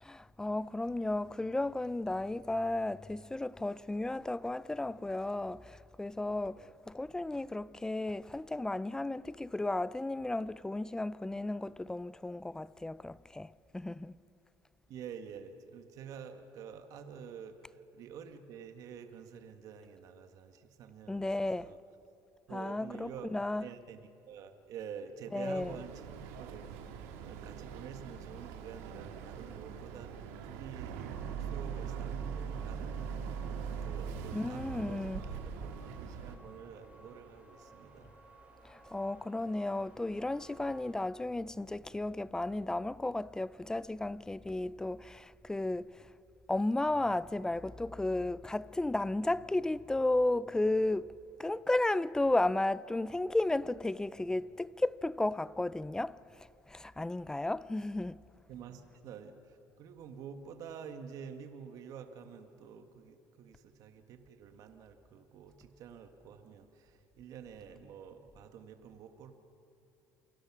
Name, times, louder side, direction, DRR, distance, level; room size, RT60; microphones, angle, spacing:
voice 1, 0.0-14.2 21.1-21.7 22.5-23.7 25.3-25.8 34.3-35.2 38.6-46.1 46.5-58.2, left 2 dB, 10° left, 0.5 m, -34 dB
voice 2, 14.9-21.8 22.5-23.3 23.6-26.8 27.2-38.1 58.5-69.4, right 7 dB, 60° right, 1.7 m, -49 dB
Boat Water vehicle, 25.6-36.3, right 7 dB, 90° right, 2.2 m, -41 dB
sound 1, 31.0-41.0, right 3 dB, 20° right, 6.5 m, -58 dB
28.5 x 23.5 x 6.2 m
supercardioid pair, 100°, 7 cm